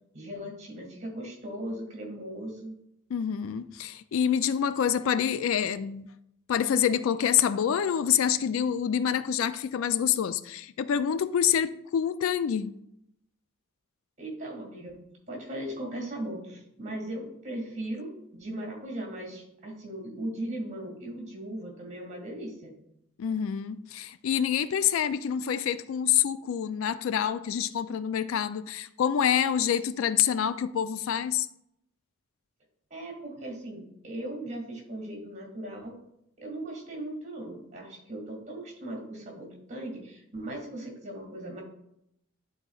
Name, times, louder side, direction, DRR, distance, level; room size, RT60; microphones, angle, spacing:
voice 1, 0.1-2.8 14.2-15.0 15.3-22.7 32.9-35.9 36.4-41.6, right 1 dB, 35° right, 2.0 m, -38 dB
voice 2, 3.1-6.1 6.5-12.8 23.2-31.5, left 8 dB, 65° left, 0.3 m, -27 dB
11.5 x 4.0 x 2.4 m
head